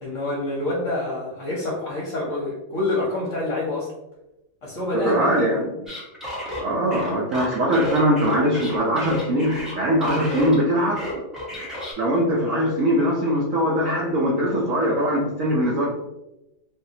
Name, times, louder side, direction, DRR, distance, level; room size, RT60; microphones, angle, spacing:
voice 1, 0.0-3.9 4.6-5.6, left 2 dB, 55° left, -5 dB, 0.9 m, -27 dB
voice 2, 4.9-5.7 6.6-11.0 12.0-15.9, equal, 70° right, -4 dB, 0.7 m, -21 dB
sound 1, 5.9-10.6 10.9-11.9, equal, ahead, 0.6 m, -32 dB
3.6 x 2.7 x 2.7 m, 0.95 s
omnidirectional pair, 2.1 m